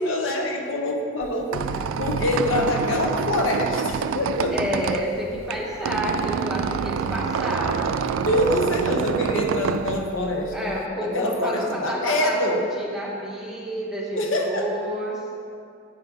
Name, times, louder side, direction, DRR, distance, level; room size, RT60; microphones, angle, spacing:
voice 1, 0.0-4.6 7.7-7.8 8.1-10.8 11.0-12.7 14.2-14.7, left 1 dB, 85° left, 2 dB, 0.9 m, -25 dB
Squeak, 1.2-10.8, right 6 dB, 90° right, 0.3 m, -27 dB
voice 2, 4.5-7.9 10.5-15.2, equal, 5° right, -5 dB, 1.0 m, -29 dB
8.4 x 5.4 x 4.6 m, 2.3 s
head